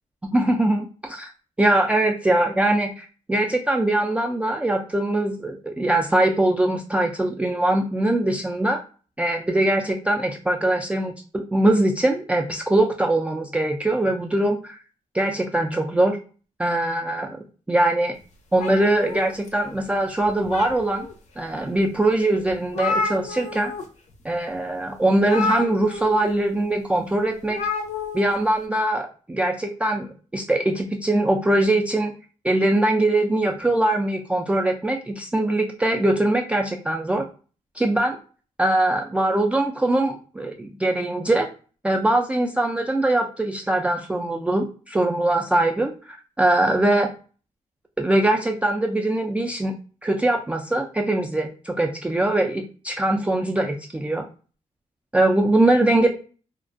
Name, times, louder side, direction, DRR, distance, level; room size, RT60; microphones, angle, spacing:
voice 1, 0.3-1.3 1.6-8.8 9.2-14.8 15.1-16.2 16.6-17.4 17.7-18.1 18.5-21.1 21.4-23.7 24.2-27.6 28.1-32.1 32.4-37.2 37.8-38.2 38.6-41.5 41.8-47.1 48.0-49.7 50.0-54.2 55.1-56.1, right 1 dB, 10° right, 1 dB, 0.3 m, -22 dB
sound 1, 18.6-19.8 20.2-21.1 21.7-21.8 22.2-22.3 22.5-23.8 24.1-24.3 25.2-26.3 27.5-28.3, left 3 dB, 65° left, 0.5 m, -29 dB
2.4 x 2.1 x 2.5 m, 0.37 s
cardioid pair, 90°, 13 cm